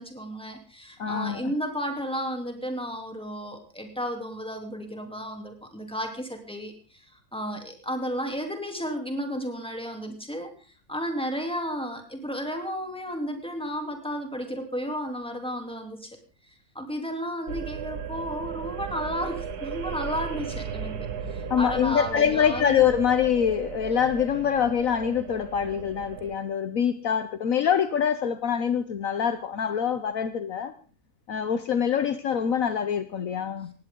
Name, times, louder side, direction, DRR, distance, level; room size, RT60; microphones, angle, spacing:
voice 1, 0.0-7.0 7.3-10.5 10.9-16.2 16.5-22.8, equal, 5° left, 3.0 m, -33 dB
voice 2, 1.0-1.5 21.5-30.7 31.3-33.7, left 8 dB, 65° left, 1.3 m, -25 dB
sound 1, 17.5-26.3, right 7 dB, 85° right, 1.9 m, -36 dB
19.0 x 16.5 x 3.8 m
omnidirectional pair, 1.6 m